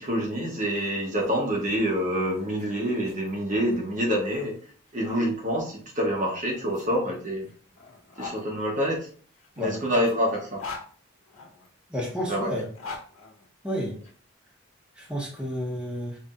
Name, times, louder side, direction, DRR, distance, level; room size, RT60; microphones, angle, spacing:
voice 1, 0.0-4.6 4.9-7.5 8.2-9.1 9.6-10.6 12.3-12.5, equal, 35° right, -1 dB, 1.0 m, -27 dB
sound 1, 0.6-5.3 6.2-8.4 9.3-11.7 12.5-14.1, left 4 dB, 80° left, 1.4 m, -44 dB
voice 2, 11.9-12.7 13.6-13.9 15.0-16.2, equal, 5° right, -4 dB, 1.1 m, -30 dB
5.6 x 3.2 x 2.5 m, 0.44 s
head